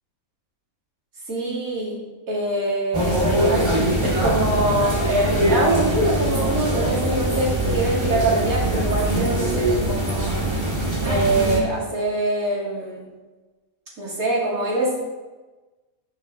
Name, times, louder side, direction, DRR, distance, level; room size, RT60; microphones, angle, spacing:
voice 1, 1.3-2.0 2.3-10.3 11.0-13.1 14.0-15.0, right 2 dB, 75° right, -5 dB, 3.3 m, -24 dB
sound 1, 2.9-11.6, right 1 dB, 20° right, 1.6 m, -22 dB
14.0 x 6.3 x 3.9 m, 1.2 s
omnidirectional pair, 1.5 m